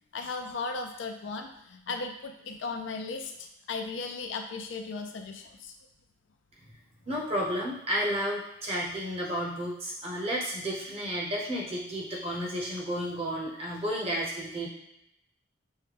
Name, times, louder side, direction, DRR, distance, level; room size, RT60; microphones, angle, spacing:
voice 1, 0.1-5.7 12.1-12.4, left 4 dB, 65° left, 5 dB, 0.4 m, -36 dB
voice 2, 7.1-14.7, equal, 30° right, -3 dB, 0.9 m, -32 dB
5.4 x 2.2 x 3.3 m, 0.82 s
head